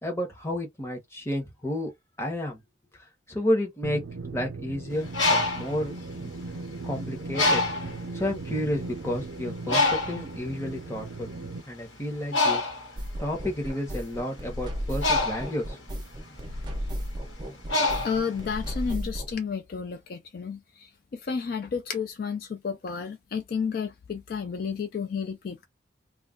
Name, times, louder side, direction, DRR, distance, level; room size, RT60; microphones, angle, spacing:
voice 1, 0.0-1.9 2.2-2.6 2.9-4.0 4.3-5.9 6.2-6.3 6.8-7.6 7.9-11.3 11.7-12.7 13.2-15.8, left 1 dB, 15° left, 0.8 m, -31 dB
sound 1, 3.8-11.6, right 3 dB, 75° right, 0.5 m, -38 dB
Bird, 4.9-6.8 7.3-8.0 8.7-8.9 9.1-18.8, left 2 dB, 90° left, 1.2 m, -27 dB
sound 2, 13.0-19.3, equal, 25° right, 0.5 m, -34 dB
voice 2, 17.8-20.6 21.3-25.6, left 6 dB, 50° left, 0.3 m, -31 dB
2.3 x 2.1 x 3.6 m
head